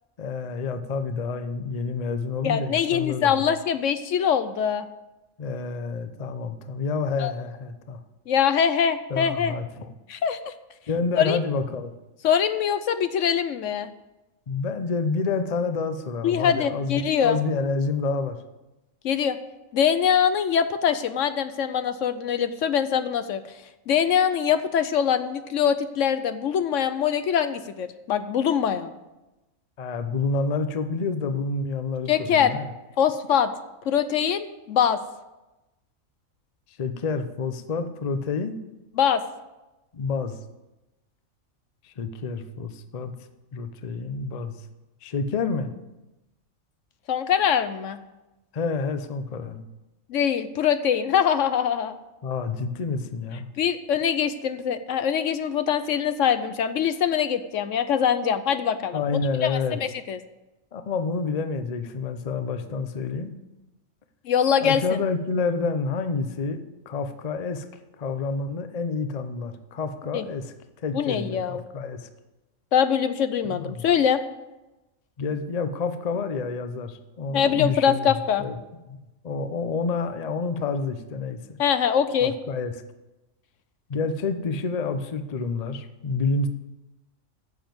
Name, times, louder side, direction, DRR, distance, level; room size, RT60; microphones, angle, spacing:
voice 1, 0.2-3.4 5.4-8.0 9.1-9.9 10.9-11.9 14.5-18.4 29.8-32.7 36.8-38.6 39.9-40.4 41.8-43.1 43.5-44.6 45.0-45.7 48.5-49.6 52.2-53.5 58.9-59.8 60.7-63.3 64.6-66.6 66.9-67.6 68.0-70.5 70.8-72.1 73.5-73.9 75.2-78.6 78.9-79.0 79.2-81.6 82.2-82.7 83.9-86.5, left 4 dB, 40° left, 9 dB, 0.6 m, -28 dB
voice 2, 2.4-4.9 7.2-7.3 8.3-9.5 10.1-10.5 11.2-11.4 12.2-13.9 16.2-17.4 19.0-19.4 19.7-23.4 23.9-28.9 32.1-32.6 33.0-33.5 33.9-35.0 39.0-39.2 47.1-48.0 50.1-51.9 53.6-59.0 59.4-60.2 64.3-64.8 70.1-70.3 70.9-71.6 72.7-74.2 77.3-78.4 81.6-82.4, left 8 dB, 70° left, 11 dB, 1.0 m, -23 dB
9.6 x 7.2 x 7.7 m, 1.0 s
omnidirectional pair, 1.4 m